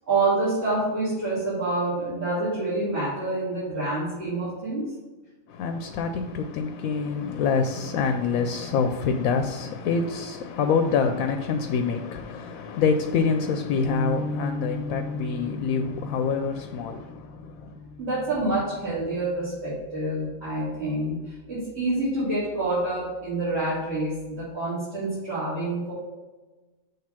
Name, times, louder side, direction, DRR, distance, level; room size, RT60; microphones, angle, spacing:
voice 1, 0.1-4.9 18.0-25.9, right 2 dB, 50° right, 2.8 m, -27 dB
voice 2, 5.5-17.8, left 5 dB, 90° left, 1.0 m, -26 dB
sound 1, 13.9-20.3, left 2 dB, 20° right, 0.4 m, -37 dB
6.7 x 3.4 x 5.7 m
omnidirectional pair, 1.4 m